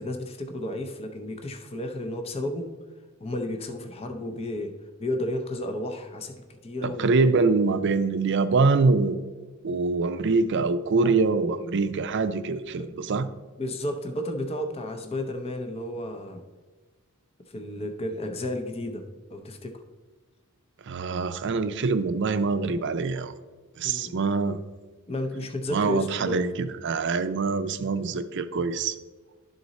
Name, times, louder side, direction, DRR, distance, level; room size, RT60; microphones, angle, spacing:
voice 1, 0.0-2.7 3.2-6.3 6.6-7.1 11.0-11.1 12.8-13.0 13.6-16.4 17.5-19.0 19.3-19.8 23.8-24.2 25.1-26.4, left 1 dB, 25° left, 5 dB, 0.6 m, -32 dB
voice 2, 6.8-9.2 9.6-13.3 20.9-23.3 23.8-24.6 25.7-28.9, right 4 dB, 55° right, 11 dB, 0.5 m, -24 dB
11.0 x 3.9 x 4.0 m, 1.4 s
head